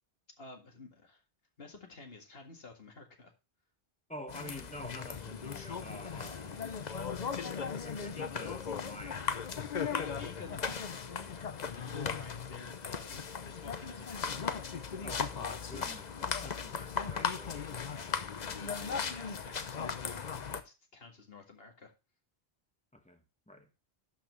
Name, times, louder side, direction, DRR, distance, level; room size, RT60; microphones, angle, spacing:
voice 1, 0.4-1.2 1.6-3.3 9.9-14.6 17.9-18.1 18.5-21.9, left 3 dB, 70° left, 2.1 m, -51 dB
voice 2, 4.1-6.6 7.4-10.1 15.0-17.9 22.9-23.7, left 1 dB, 5° left, 1.4 m, -49 dB
sound 1, 4.3-20.6, left 6 dB, 45° left, 0.8 m, -37 dB
11.5 x 6.0 x 3.1 m
omnidirectional pair, 1.0 m